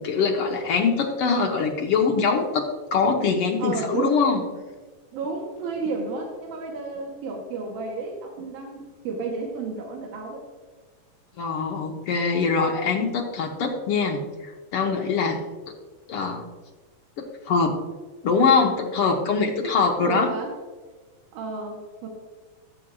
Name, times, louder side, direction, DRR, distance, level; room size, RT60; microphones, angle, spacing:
voice 1, 0.0-4.4 11.4-15.5 16.1-16.5 17.5-17.8 18.2-20.3, left 5 dB, 70° left, 2 dB, 1.4 m, -23 dB
voice 2, 3.6-4.2 5.1-10.5 19.6-19.7 20.0-20.6 21.3-22.1, right 4 dB, 90° right, 1 dB, 2.5 m, -32 dB
15.0 x 7.3 x 2.3 m, 1.3 s
omnidirectional pair, 3.5 m